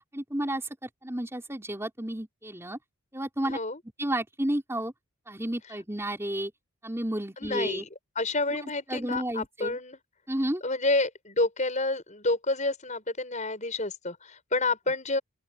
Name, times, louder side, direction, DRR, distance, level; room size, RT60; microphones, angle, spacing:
voice 1, 0.1-2.8 3.1-3.6 4.0-4.9 5.3-6.5 6.8-7.8 8.6-9.8 10.3-10.6, right 1 dB, 10° right, 4.6 m, -32 dB
voice 2, 3.4-3.8 7.4-7.8 8.2-10.0 10.6-15.2, left 2 dB, 35° left, 6.2 m, -29 dB
open air
head